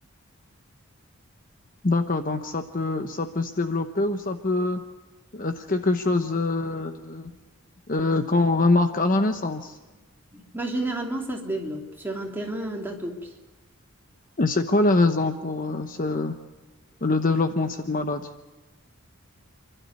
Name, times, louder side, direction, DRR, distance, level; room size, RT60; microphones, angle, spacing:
voice 1, 1.8-4.8 5.3-7.3 7.9-9.8 14.4-16.4 17.0-18.3, left 2 dB, 40° left, 7 dB, 1.0 m, -24 dB
voice 2, 10.3-13.3, right 1 dB, 10° right, -1 dB, 3.1 m, -31 dB
29.0 x 12.5 x 9.5 m, 1.2 s
head